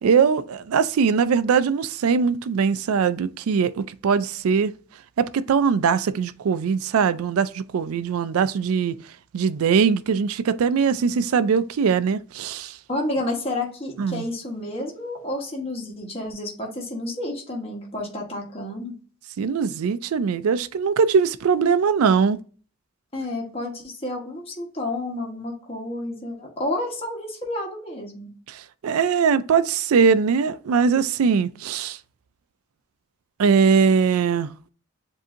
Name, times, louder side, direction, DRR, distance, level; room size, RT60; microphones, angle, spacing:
voice 1, 0.0-4.7 5.2-9.0 9.3-12.8 14.0-14.3 19.4-22.4 28.5-32.0 33.4-34.5, right 6 dB, 80° right, 0.4 m, -21 dB
voice 2, 12.9-18.9 23.1-28.3, left 1 dB, 25° left, 1.1 m, -30 dB
7.5 x 2.7 x 2.5 m
head